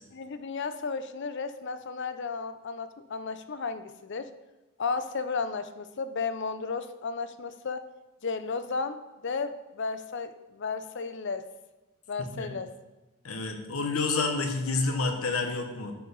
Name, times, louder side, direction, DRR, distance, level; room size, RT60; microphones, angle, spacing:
voice 1, 0.1-4.3 4.8-7.9 8.2-11.4 12.1-12.7, left 4 dB, 55° left, 11 dB, 0.6 m, -34 dB
voice 2, 12.2-12.5 13.2-15.9, left 3 dB, 85° left, 4 dB, 1.2 m, -29 dB
10.5 x 4.7 x 5.3 m, 1.1 s
head